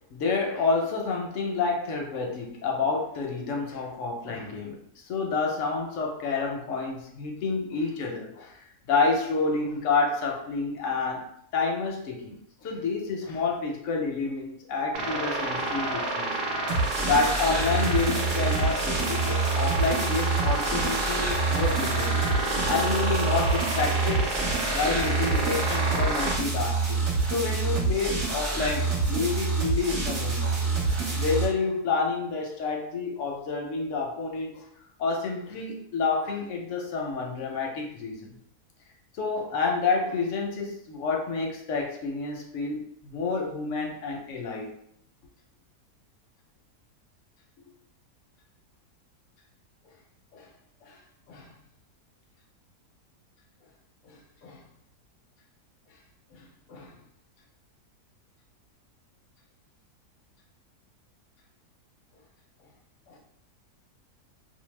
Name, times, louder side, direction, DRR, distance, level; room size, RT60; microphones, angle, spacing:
voice 1, 0.1-4.8 5.0-11.2 11.5-16.4 16.8-22.2 22.7-24.3 24.7-27.0 27.3-30.7 31.0-34.6 35.0-38.4 39.2-44.7 50.3-50.5 50.8-51.0 51.3-51.5 54.0-54.6 56.3-56.4 56.7-57.0 63.1-63.2, left 4 dB, 65° left, 1 dB, 0.8 m, -29 dB
sound 1, 14.9-26.3, right 2 dB, 85° right, 1.2 m, -29 dB
sound 2, 16.7-31.4, right 4 dB, 50° right, 1.1 m, -27 dB
2.6 x 2.1 x 3.1 m, 0.70 s
omnidirectional pair, 1.7 m